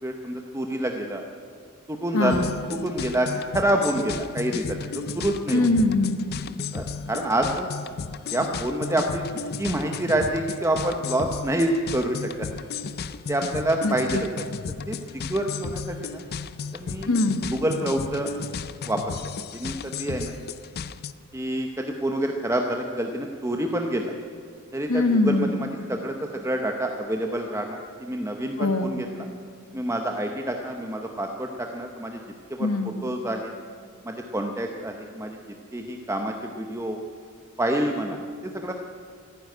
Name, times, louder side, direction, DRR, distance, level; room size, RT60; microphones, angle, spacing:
voice 1, 0.0-1.2 1.9-2.5 2.8-5.7 6.7-7.7 8.3-9.2 9.6-12.5 13.3-14.4 14.9-15.0 15.3-16.2 16.7-17.1 17.5-18.3 18.8-19.2 19.5-20.4 21.3-24.1 24.7-29.3 29.7-32.2 32.5-33.5 34.0-35.4 35.7-37.0 37.6-38.7, right 1 dB, 15° right, 3 dB, 0.8 m, -27 dB
voice 2, 2.1-2.5 5.5-6.2 13.8-14.2 17.1-17.4 24.9-25.5 28.6-28.9 32.6-32.9, left 2 dB, 65° left, 8 dB, 1.4 m, -22 dB
sound 1, 2.3-21.1, left 5 dB, 45° left, 0.4 m, -34 dB
15.0 x 10.0 x 9.3 m, 2.2 s
head